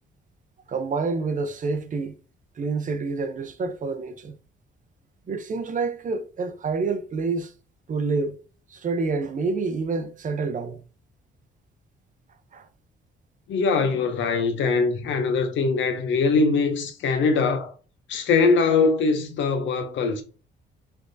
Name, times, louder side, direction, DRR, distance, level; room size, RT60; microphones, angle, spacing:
voice 1, 0.7-2.2 2.6-4.4 5.3-7.5 7.9-8.4 8.7-10.8 12.5-12.7, right 4 dB, 40° right, 0.5 m, -28 dB
voice 2, 13.5-17.7 18.1-20.2, left 4 dB, 70° left, 0.7 m, -22 dB
3.4 x 3.0 x 2.6 m
cardioid pair, 90°, 20 cm